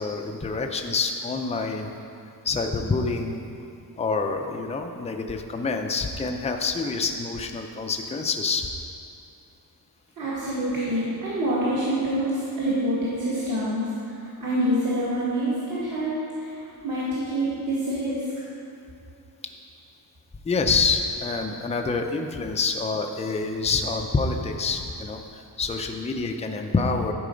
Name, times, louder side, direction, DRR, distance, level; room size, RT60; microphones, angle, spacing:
voice 1, 0.0-1.9 2.4-3.4 4.0-8.7 20.4-27.1, left 4 dB, 15° left, 4 dB, 0.4 m, -27 dB
voice 2, 10.2-16.6 16.8-18.2, right 1 dB, 50° right, -10 dB, 1.8 m, -26 dB
11.5 x 4.7 x 5.1 m, 2.7 s
wide cardioid pair, 160°, 41 cm